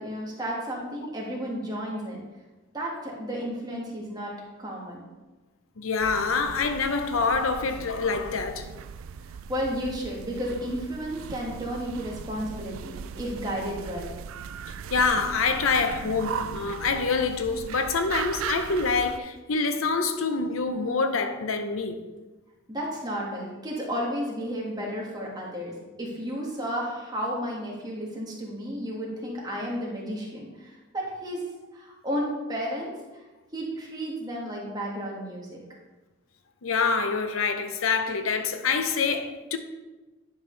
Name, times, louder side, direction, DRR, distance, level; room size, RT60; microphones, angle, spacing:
voice 1, 0.0-2.2 2.7-4.3 4.6-5.0 9.3-14.1 22.7-31.4 31.7-33.2 33.5-35.6, equal, 20° right, 1.6 m, -33 dB
voice 2, 5.8-8.7 14.9-22.0 36.6-39.6, left 4 dB, 85° left, 0.7 m, -26 dB
sound 1, 6.0-19.2, right 7 dB, 75° right, 0.3 m, -38 dB
10.0 x 5.7 x 3.2 m
head